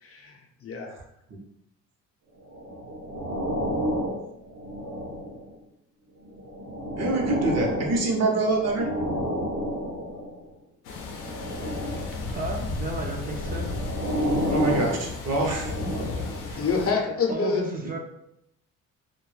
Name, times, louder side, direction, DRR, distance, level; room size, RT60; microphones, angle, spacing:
voice 1, 0.0-0.9 16.5-17.6, left 4 dB, 50° left, 1 dB, 0.6 m, -27 dB
sound 1, 2.5-5.6 6.2-10.4 11.2-12.3 13.1-16.5 17.2-17.3, equal, 85° right, 1.0 m, -31 dB
voice 2, 7.0-8.9 14.5-15.7 16.5-16.6, right 2 dB, 55° right, 1 dB, 0.8 m, -25 dB
sound 2, 10.8-16.9, left 3 dB, 90° left, 0.6 m, -34 dB
voice 3, 12.3-13.7 17.1-18.0, right 2 dB, 30° right, -1 dB, 0.4 m, -33 dB
2.2 x 2.1 x 3.2 m, 0.77 s
cardioid pair, 90°, 30 cm